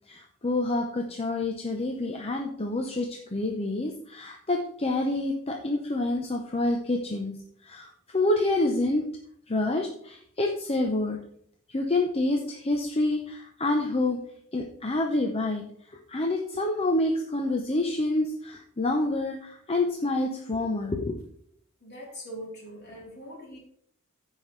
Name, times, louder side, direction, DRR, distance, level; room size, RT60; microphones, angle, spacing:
voice 1, 0.1-7.3 7.6-9.0 9.5-11.2 11.7-14.2 14.5-15.6 15.9-21.2, left 2 dB, 30° left, 2 dB, 0.8 m, -27 dB
voice 2, 21.8-23.6, equal, 50° left, -2 dB, 3.6 m, -42 dB
14.5 x 5.7 x 3.3 m, 0.66 s
head